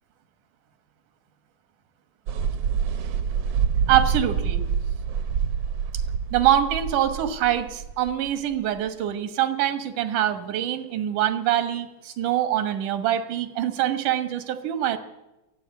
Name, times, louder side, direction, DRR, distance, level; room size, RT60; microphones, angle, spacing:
sound 1, 2.3-8.9, right 7 dB, 65° right, 1.6 m, -26 dB
voice 1, 3.9-4.6 6.3-15.0, right 11 dB, 80° right, 10 dB, 2.8 m, -24 dB
23.5 x 15.0 x 8.3 m, 1.0 s
omnidirectional pair, 3.5 m